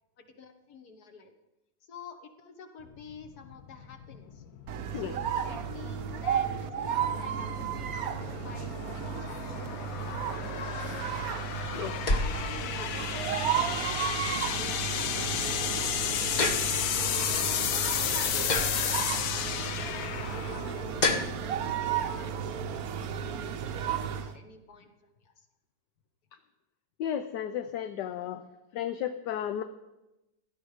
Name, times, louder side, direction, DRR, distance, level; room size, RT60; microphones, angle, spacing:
voice 1, 0.2-1.3 1.9-4.4 4.9-10.9 12.1-17.0 17.4-23.2 23.8-24.9 25.2-25.5, left 5 dB, 55° left, 6 dB, 1.8 m, -49 dB
sound 1, 2.9-22.0, left 9 dB, 90° left, 1.6 m, -34 dB
sound 2, 4.7-24.3, right 8 dB, 60° right, 1.1 m, -33 dB
sound 3, 10.9-21.6, left 2 dB, 30° left, 0.9 m, -35 dB
voice 2, 27.0-28.4 28.7-29.6, left 10 dB, 70° left, 9 dB, 1.3 m, -33 dB
16.5 x 12.5 x 5.0 m, 0.98 s
omnidirectional pair, 2.0 m